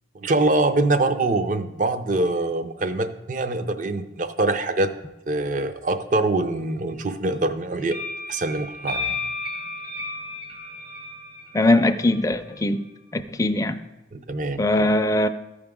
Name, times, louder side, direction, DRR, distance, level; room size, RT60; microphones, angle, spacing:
voice 1, 0.1-4.9 5.3-8.0 8.3-9.2 14.1-14.6, right 2 dB, 45° right, 0.5 m, -24 dB
sound 1, 7.9-12.3, left 3 dB, 80° right, 2.4 m, -33 dB
voice 2, 11.5-12.8 13.1-13.8 14.6-15.3, left 1 dB, 20° left, 0.4 m, -21 dB
14.0 x 4.9 x 3.6 m
head